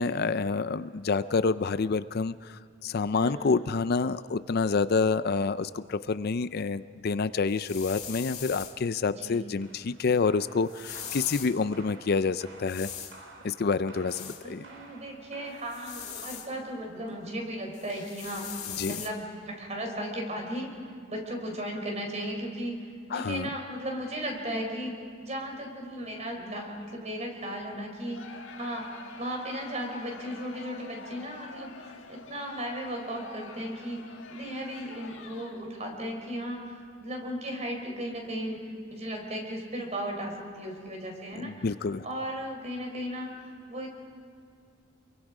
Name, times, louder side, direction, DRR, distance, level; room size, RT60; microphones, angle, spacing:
voice 1, 0.0-12.9 13.4-14.7 18.8-19.0 23.1-23.5 41.4-42.0, left 4 dB, 50° left, 14 dB, 0.5 m, -28 dB
voice 2, 3.1-3.6 9.1-9.5 14.4-18.5 18.9-20.7 21.1-28.9 29.2-41.5 42.0-43.9, equal, 35° right, 2 dB, 4.4 m, -36 dB
sound 1, 7.5-8.8 10.7-11.5 12.7-13.2 14.1-14.4 15.7-16.5 17.7-19.1, left 8 dB, 35° left, 1.9 m, -40 dB
sound 2, 9.6-19.8, right 2 dB, 65° right, 3.4 m, -53 dB
Crowd, 28.1-35.8, left 4 dB, 75° left, 1.8 m, -47 dB
28.5 x 23.0 x 4.9 m, 2.4 s
head